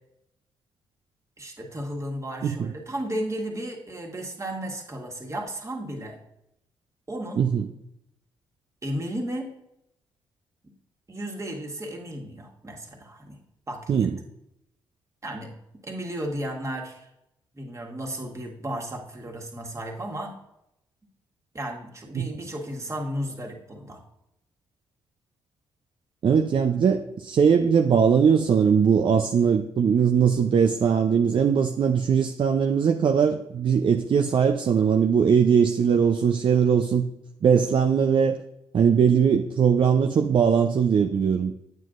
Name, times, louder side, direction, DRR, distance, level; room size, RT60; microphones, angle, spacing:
voice 1, 1.4-6.2 7.1-7.5 8.8-9.5 11.1-13.4 13.7-14.1 15.2-15.5 15.8-17.1 17.5-20.4 21.5-24.0, right 1 dB, 25° right, 0 dB, 1.8 m, -34 dB
voice 2, 26.2-37.1 37.4-38.4 38.7-41.5, right 7 dB, 50° right, 5 dB, 0.5 m, -20 dB
9.0 x 7.5 x 2.5 m, 0.82 s
hypercardioid pair, 40°, 11 cm